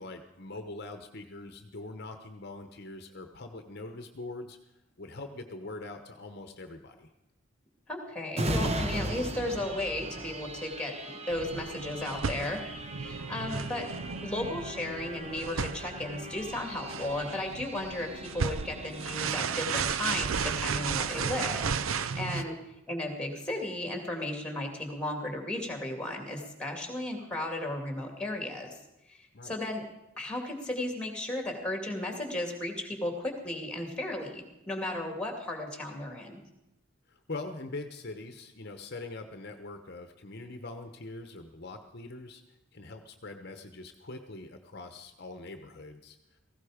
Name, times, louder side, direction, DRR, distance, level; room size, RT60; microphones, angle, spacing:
voice 1, 0.0-4.6 5.0-7.1 13.4-13.6 22.3-22.5 29.3-29.5 37.1-46.4, left 2 dB, 50° left, 7 dB, 1.0 m, -43 dB
voice 2, 7.9-12.6 13.0-13.9 14.2-22.5 22.9-28.7 29.1-29.8 30.2-36.4, left 1 dB, 5° left, 3 dB, 2.5 m, -35 dB
sound 1, 8.3-21.7 22.1-22.2, right 1 dB, 30° right, 1.2 m, -39 dB
sound 2, 11.3-22.4, right 6 dB, 85° right, 0.6 m, -34 dB
17.5 x 16.0 x 5.0 m, 0.92 s
head